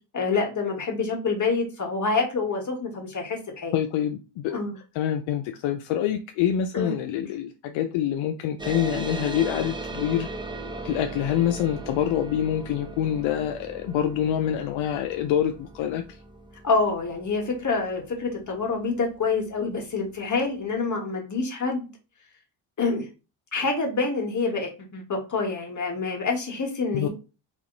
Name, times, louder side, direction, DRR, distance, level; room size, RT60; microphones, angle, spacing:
voice 1, 0.1-3.8 4.5-4.8 6.7-6.9 16.6-21.9 22.8-23.1 23.5-27.1, left 4 dB, 40° left, 1.7 m, -27 dB
voice 2, 3.7-4.6 4.9-10.3 10.8-16.2 26.9-27.1, left 10 dB, 85° left, 0.6 m, -26 dB
sound 1, 8.6-19.5, right 2 dB, 10° right, 0.7 m, -38 dB
3.4 x 2.9 x 3.9 m
cardioid pair, 75°, 46 cm